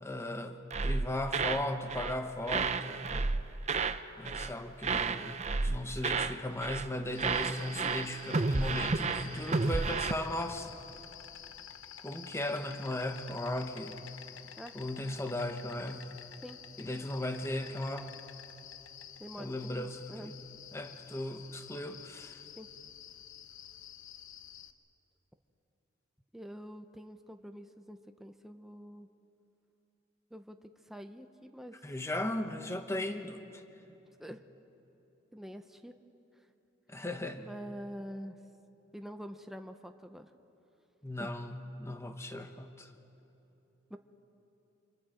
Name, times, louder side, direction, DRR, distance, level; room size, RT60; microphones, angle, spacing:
voice 1, 0.0-3.0 4.2-10.8 12.0-14.0 14.7-16.2 16.8-18.1 19.4-20.4 20.7-22.4 31.8-33.6 36.9-37.4 41.0-42.9, left 1 dB, 15° left, 6 dB, 1.2 m, -37 dB
sound 1, 0.7-1.6 1.9-2.2 2.5-4.0 4.2-4.5 4.8-6.4 6.6-6.9 7.2-10.1, right 4 dB, 35° right, 0.7 m, -32 dB
Insect, 7.1-24.7, left 9 dB, 90° left, 0.9 m, -50 dB
voice 2, 19.2-20.3 22.6-22.7 26.3-29.1 30.3-30.6 30.9-31.8 34.2-34.4 35.3-36.0 37.4-38.4 38.9-40.3 41.2-41.3 43.9-44.0, equal, ahead, 6 dB, 0.7 m, -46 dB
28.0 x 26.0 x 5.1 m, 3.0 s
head